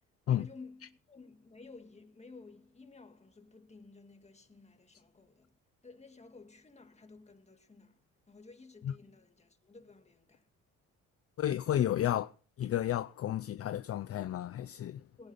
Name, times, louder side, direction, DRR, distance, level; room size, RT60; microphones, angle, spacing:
voice 1, 0.3-10.5 15.2-15.3, left 3 dB, 20° left, 2.0 m, -54 dB
voice 2, 11.4-12.3 12.6-15.0, left 11 dB, 50° left, 0.6 m, -32 dB
18.5 x 11.0 x 4.2 m
cardioid pair, 90°, 30 cm